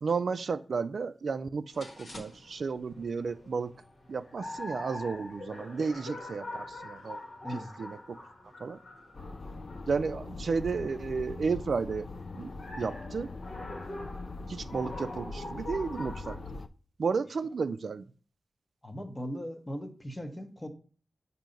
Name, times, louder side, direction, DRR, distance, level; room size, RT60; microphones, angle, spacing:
voice 1, 0.0-3.7 4.1-7.2 7.5-8.2 8.6-8.8 9.9-12.1 12.4-12.5 12.8-13.3 14.5-16.4 17.0-18.0, right 5 dB, 70° right, 0.3 m, -32 dB
sound 1, 1.7-16.4, left 1 dB, 75° left, 1.4 m, -44 dB
sound 2, 9.1-16.7, left 3 dB, 50° left, 0.3 m, -42 dB
voice 2, 18.8-20.7, equal, 15° left, 0.8 m, -38 dB
7.6 x 2.7 x 5.1 m
wide cardioid pair, 140°, 0 cm